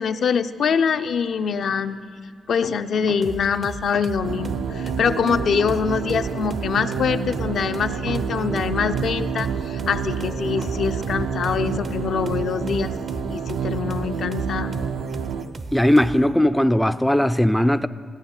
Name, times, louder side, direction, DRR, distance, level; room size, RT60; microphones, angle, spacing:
voice 1, 0.0-2.1 2.5-12.9 13.3-14.8, left 6 dB, 65° left, 8 dB, 0.5 m, -24 dB
sound 1, 0.9-1.6 2.0-2.1 2.6-3.6 4.1-4.2 5.2-6.7 7.1-7.6 7.9-8.6 9.0-9.1 9.3-9.5 10.3-11.9 12.2-12.3, right 3 dB, 70° right, 1.3 m, -43 dB
sound 2, 3.2-16.4, right 3 dB, 45° right, 0.5 m, -37 dB
sound 3, 4.2-15.4, right 6 dB, 85° right, 0.6 m, -28 dB
voice 2, 15.7-17.9, left 1 dB, 5° left, 12 dB, 0.3 m, -18 dB
15.5 x 8.7 x 7.1 m, 2.2 s
cardioid pair, 80°, 0 cm